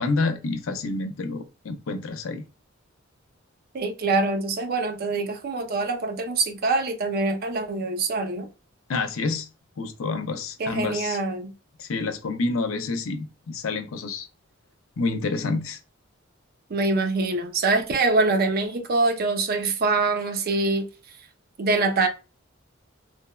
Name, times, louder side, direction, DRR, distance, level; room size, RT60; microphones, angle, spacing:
voice 1, 0.0-2.4 8.9-9.5 9.8-11.2 11.8-14.3 15.0-15.8, left 3 dB, 85° left, 0.5 m, -28 dB
voice 2, 3.7-8.5 10.6-11.5 16.7-20.9 21.6-22.1, right 3 dB, 50° right, 0.5 m, -24 dB
3.2 x 2.1 x 2.2 m
head